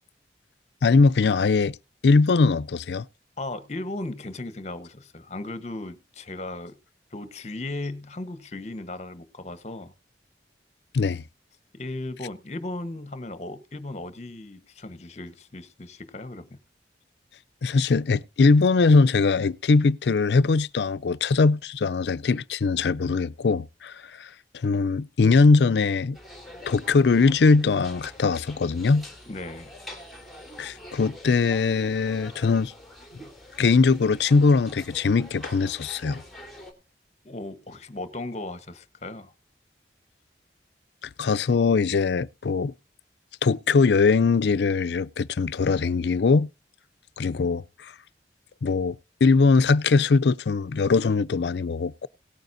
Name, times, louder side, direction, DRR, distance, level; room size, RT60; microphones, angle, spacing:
voice 1, 0.8-1.8 2.0-3.0 10.9-11.2 17.6-24.3 24.6-26.2 26.7-29.1 30.6-32.7 33.6-36.2 41.2-42.7 43.4-46.5 47.2-47.9 48.6-52.1, left 4 dB, 75° left, 0.5 m, -21 dB
voice 2, 3.4-6.8 7.1-9.9 11.7-16.6 29.3-29.7 37.2-39.3, left 2 dB, 40° left, 1.1 m, -36 dB
sound 1, 26.1-36.7, left 1 dB, ahead, 2.6 m, -45 dB
17.5 x 9.1 x 2.6 m
head